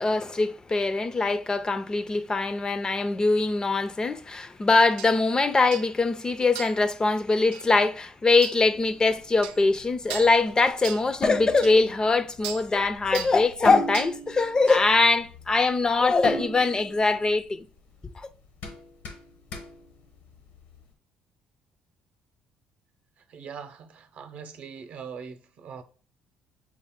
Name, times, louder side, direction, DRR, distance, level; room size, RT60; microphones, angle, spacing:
voice 1, 0.0-17.7 18.2-18.3, left 3 dB, 25° left, 0.4 m, -22 dB
sound 1, 5.0-5.1 5.7-5.9 6.6-6.8 7.5-7.7 8.4-8.6 9.4-9.6 10.1-10.4 10.8-11.1 11.6-11.7 12.4-12.7 13.1-13.4 13.9-14.2 14.7-14.8, right 10 dB, 90° right, 0.3 m, -37 dB
sound 2, 8.7-20.8, equal, 80° left, 1.0 m, -39 dB
voice 2, 23.3-25.8, right 6 dB, 60° right, 0.7 m, -41 dB
6.1 x 2.1 x 3.6 m
supercardioid pair, 75°, 3 cm